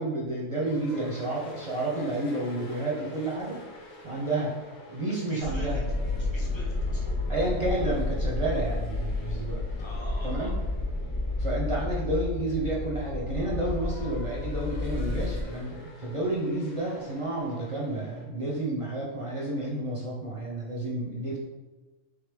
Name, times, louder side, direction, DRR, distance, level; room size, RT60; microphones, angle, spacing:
voice 1, 0.0-3.6 4.0-4.6 4.9-5.8 7.3-9.6 10.2-10.5 11.4-21.4, right 2 dB, 35° right, -4 dB, 0.5 m, -30 dB
sound 1, 0.6-18.3, left 2 dB, 85° left, 1.3 m, -49 dB
voice 2, 5.1-5.8 6.1-7.2 9.8-10.5, equal, 25° left, -4 dB, 0.8 m, -45 dB
sound 2, 5.4-15.4, left 2 dB, 50° left, 1.1 m, -31 dB
4.0 x 3.2 x 3.3 m, 1.2 s
omnidirectional pair, 1.3 m